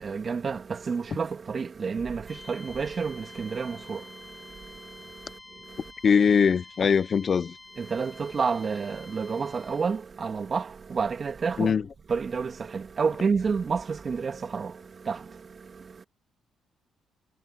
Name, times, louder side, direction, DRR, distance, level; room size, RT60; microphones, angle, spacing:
voice 1, 0.0-5.9 7.8-11.7 12.1-16.0, right 5 dB, 40° right, 2.2 m, -30 dB
sound 1, 2.3-10.0, left 2 dB, 15° left, 2.4 m, -49 dB
voice 2, 6.0-7.6 11.6-11.8, left 6 dB, 45° left, 0.7 m, -21 dB
cardioid pair, 90°, 0 cm